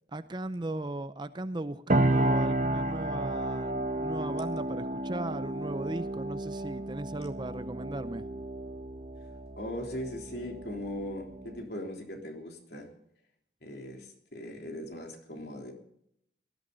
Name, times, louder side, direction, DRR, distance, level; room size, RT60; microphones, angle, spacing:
voice 1, 0.1-8.2, right 2 dB, 25° right, 13 dB, 0.5 m, -37 dB
sound 1, 1.9-11.6, right 1 dB, 40° right, 1.1 m, -32 dB
voice 2, 9.6-12.9 13.6-15.7, left 1 dB, 65° left, 2 dB, 3.4 m, -39 dB
18.5 x 13.0 x 3.9 m, 0.73 s
head